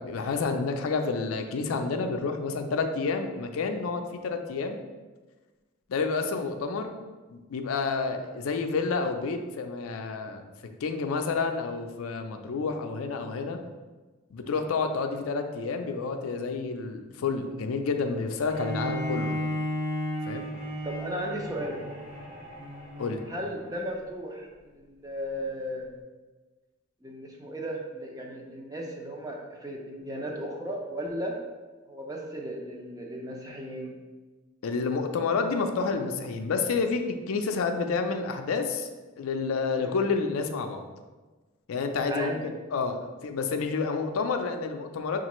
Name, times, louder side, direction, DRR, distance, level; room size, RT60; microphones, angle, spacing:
voice 1, 0.0-4.8 5.9-6.9 7.3-10.4 10.8-13.6 14.3-19.4 20.2-20.4 23.0-23.2 34.6-38.9 39.2-40.8 41.7-42.4 42.7-45.2, left 4 dB, 85° left, 5 dB, 0.4 m, -29 dB
Bowed string instrument, 18.5-23.7, equal, 45° right, 1.2 m, -34 dB
voice 2, 20.8-21.8 23.3-25.9 27.0-31.3 31.9-33.9 39.8-40.0 42.1-42.5, equal, 15° right, 0 dB, 0.5 m, -35 dB
6.0 x 2.4 x 3.0 m, 1.3 s
head